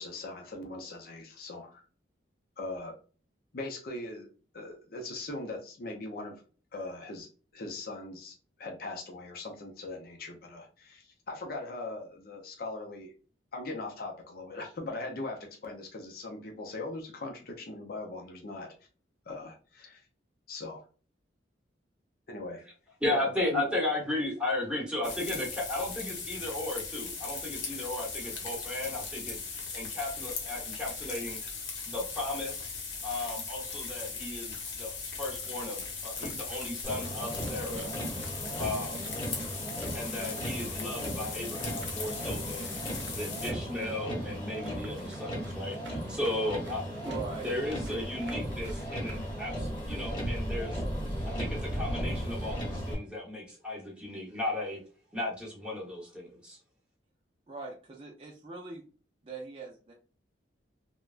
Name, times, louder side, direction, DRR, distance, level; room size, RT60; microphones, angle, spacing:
voice 1, 0.0-1.8 2.6-2.9 3.5-4.3 4.5-6.4 6.7-7.3 7.5-13.1 13.5-18.7 19.3-20.1 20.5-20.8 22.3-22.6 23.1-23.7, left 2 dB, 50° left, 1 dB, 0.5 m, -40 dB
voice 2, 23.0-31.5 31.8-32.7 33.0-37.9 38.6-39.1 39.9-46.8 47.4-50.8 51.3-54.8 55.1-56.6, left 1 dB, 5° right, -4 dB, 0.9 m, -35 dB
sound 1, 25.0-43.5, left 4 dB, 80° left, 0.9 m, -39 dB
sound 2, 35.4-49.4, right 4 dB, 75° right, 0.6 m, -55 dB
Motor vehicle (road), 36.8-52.9, equal, 25° left, 1.0 m, -36 dB
voice 3, 47.0-47.5 57.5-58.8 59.2-59.9, right 4 dB, 30° right, -2 dB, 0.4 m, -41 dB
3.2 x 2.1 x 2.4 m, 0.38 s
head